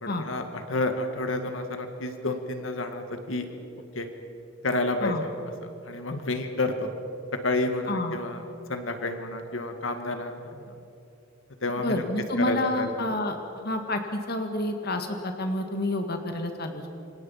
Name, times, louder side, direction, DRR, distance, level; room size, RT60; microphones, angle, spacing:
voice 1, 0.0-3.5 3.9-4.1 4.6-5.3 5.6-6.9 7.3-10.7 11.6-12.0 12.4-13.1, left 2 dB, 75° left, 6 dB, 2.0 m, -30 dB
voice 2, 11.8-13.4 13.6-16.9, left 1 dB, 50° left, 5 dB, 2.0 m, -29 dB
28.0 x 25.5 x 5.8 m, 2.7 s
head